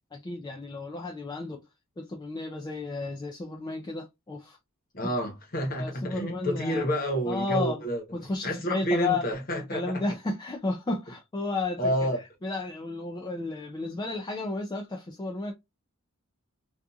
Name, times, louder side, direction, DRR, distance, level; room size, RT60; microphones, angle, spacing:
voice 1, 0.1-1.6 2.0-4.6 5.0-5.1 5.8-6.8 7.3-7.8 8.1-9.2 9.6-12.1 12.4-15.5, left 3 dB, 20° left, 0.3 m, -33 dB
voice 2, 4.9-8.0 8.4-10.0 11.8-12.2, equal, 45° left, 1.0 m, -29 dB
2.7 x 2.4 x 2.3 m
head